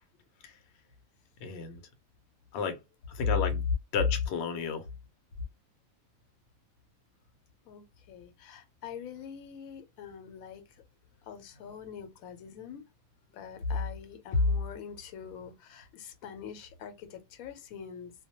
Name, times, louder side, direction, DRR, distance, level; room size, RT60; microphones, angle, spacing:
voice 1, 1.4-1.8 2.5-2.8 3.1-3.7 3.9-4.9, left 6 dB, 65° left, 0.7 m, -33 dB
voice 2, 7.6-10.8 11.2-12.8 13.3-18.1, left 4 dB, 85° left, 1.0 m, -37 dB
2.2 x 2.1 x 2.8 m
omnidirectional pair, 1.4 m